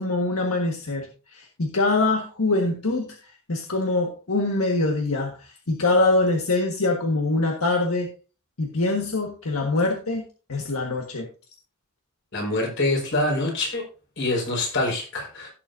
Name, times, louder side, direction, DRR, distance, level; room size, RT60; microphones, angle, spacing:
voice 1, 0.0-3.1 3.5-5.3 5.7-8.1 8.6-10.2 10.5-11.3, left 2 dB, 80° left, 2 dB, 1.6 m, -24 dB
voice 2, 12.3-13.8 14.2-15.5, left 2 dB, 55° left, -1 dB, 4.9 m, -25 dB
16.5 x 7.0 x 2.7 m, 0.36 s
head